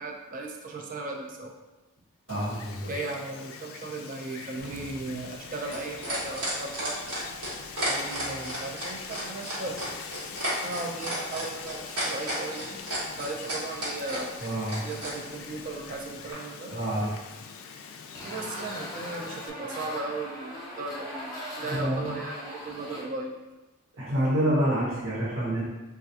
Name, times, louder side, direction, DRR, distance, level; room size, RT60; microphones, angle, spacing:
voice 1, 0.0-1.5 2.9-7.2 7.9-9.9 10.6-14.3 14.8-16.7 18.2-21.2 21.5-23.4, right 2 dB, 40° right, 1 dB, 0.4 m, -36 dB
Wind, 2.3-19.5, left 6 dB, 70° left, 0.3 m, -43 dB
voice 2, 2.3-2.9 14.4-14.7 16.7-17.1 21.6-22.2 24.0-25.6, right 1 dB, 60° right, -8 dB, 0.9 m, -27 dB
sound 1, 4.6-15.1 16.3-16.4, right 1 dB, 80° right, 1.2 m, -33 dB
sound 2, 18.1-23.0, equal, 15° left, 0.6 m, -39 dB
3.3 x 2.3 x 2.7 m, 1.1 s
head